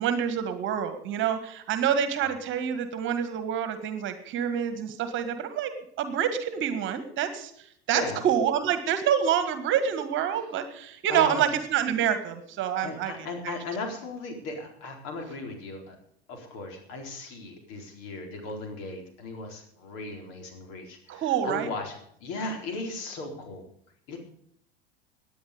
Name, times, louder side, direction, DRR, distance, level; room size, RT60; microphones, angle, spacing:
voice 1, 0.0-5.7 6.0-13.1 13.4-13.5 21.1-21.7, right 9 dB, 40° right, 10 dB, 1.8 m, -27 dB
voice 2, 7.9-8.3 10.4-10.5 11.1-11.4 12.8-16.0 16.3-23.7 24.1-24.2, left 3 dB, 50° left, 3 dB, 4.1 m, -37 dB
18.0 x 10.0 x 5.1 m, 0.68 s
figure-of-eight pair, 80°, 31 cm